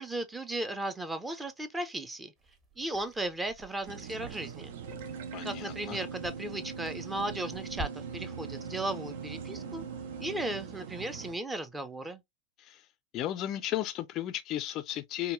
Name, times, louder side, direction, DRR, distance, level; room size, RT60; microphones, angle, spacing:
voice 1, 0.0-2.3 2.8-4.7 5.4-9.8 10.2-12.2, right 1 dB, 10° right, 0.6 m, -36 dB
sound 1, 2.4-7.9, right 2 dB, 30° right, 1.3 m, -49 dB
sound 2, 3.9-11.3, right 9 dB, 55° right, 0.5 m, -43 dB
Organ, 4.8-11.4, right 4 dB, 75° right, 1.4 m, -44 dB
voice 2, 5.3-6.0 12.6-12.8 13.1-15.3, left 13 dB, 35° left, 0.4 m, -34 dB
5.2 x 2.3 x 2.5 m
figure-of-eight pair, 90°, 0 cm